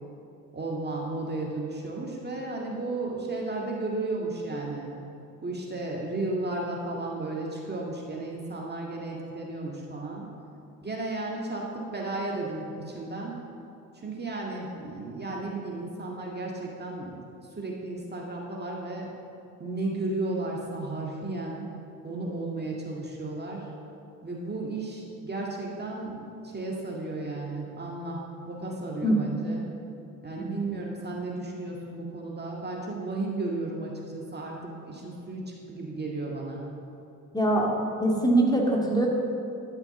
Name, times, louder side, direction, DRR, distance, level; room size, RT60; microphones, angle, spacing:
voice 1, 0.5-4.9 5.4-10.3 10.8-13.4 13.9-17.2 17.6-19.1 19.6-21.7 22.0-23.7 24.2-29.6 30.2-36.6, right 2 dB, 25° right, -2 dB, 2.0 m, -34 dB
voice 2, 37.3-37.7 38.0-39.1, right 1 dB, 10° left, -2 dB, 2.2 m, -23 dB
13.0 x 5.8 x 7.0 m, 2.6 s
figure-of-eight pair, 50°, 42 cm